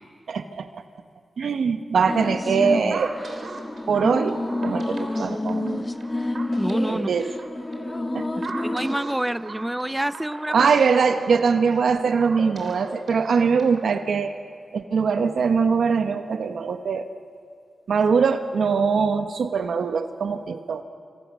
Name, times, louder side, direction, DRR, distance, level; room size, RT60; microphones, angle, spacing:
voice 1, 0.3-0.8 1.4-3.1 3.9-5.9 6.9-7.3 8.1-8.2 10.5-14.3 14.7-17.1 17.9-20.8, right 5 dB, 85° right, 8 dB, 1.1 m, -22 dB
sound 1, 2.1-9.0, left 2 dB, 20° left, 1.1 m, -29 dB
sound 2, 2.9-13.9, right 3 dB, 60° right, 3.4 m, -39 dB
voice 2, 6.6-7.1 8.6-10.7, right 1 dB, 10° right, 15 dB, 0.6 m, -27 dB
28.0 x 25.5 x 6.3 m, 2.3 s
wide cardioid pair, 85°, 0 cm